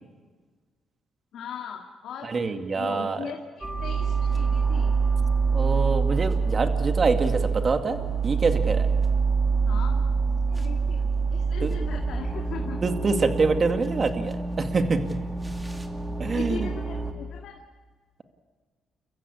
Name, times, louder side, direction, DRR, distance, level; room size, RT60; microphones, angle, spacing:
voice 1, 1.3-2.3 2.8-4.9 9.6-10.0 10.3-12.8 16.3-17.5, left 7 dB, 75° left, 1 dB, 2.3 m, -39 dB
voice 2, 2.3-3.2 5.5-8.0 8.2-8.9 11.6-11.7 12.8-15.0 16.2-16.7, right 4 dB, 40° right, 6 dB, 2.2 m, -25 dB
sound 1, 3.6-17.1, right 5 dB, 15° right, 2.4 m, -26 dB
30.0 x 15.0 x 8.7 m, 1.4 s
cardioid pair, 90°, 0 cm